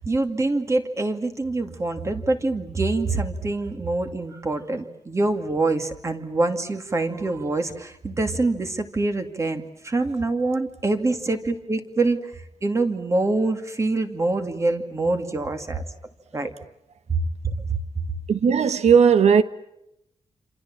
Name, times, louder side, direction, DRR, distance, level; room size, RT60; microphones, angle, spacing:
voice 1, 0.0-12.2 12.6-15.8 16.3-16.5 17.1-17.2 17.7-17.8, right 2 dB, 25° right, 2.4 m, -25 dB
voice 2, 18.3-19.4, right 6 dB, 70° right, 1.4 m, -16 dB
28.5 x 27.0 x 7.5 m
wide cardioid pair, 155°, 12 cm